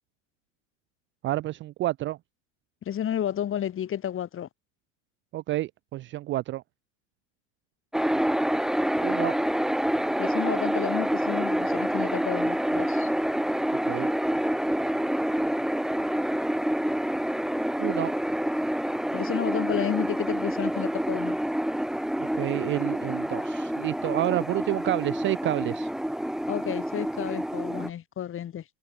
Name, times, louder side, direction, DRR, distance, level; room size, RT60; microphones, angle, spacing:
voice 1, 1.2-2.2 5.3-6.6 9.0-9.4 13.9-14.1 17.8-18.1 22.2-25.9, right 16 dB, 30° right, 0.6 m, -29 dB
voice 2, 2.8-4.5 10.2-13.1 19.1-21.4 26.5-28.6, left 10 dB, 35° left, 6.1 m, -31 dB
sound 1, 7.9-27.9, equal, ahead, 1.3 m, -27 dB
hypercardioid pair, 105°, 38 cm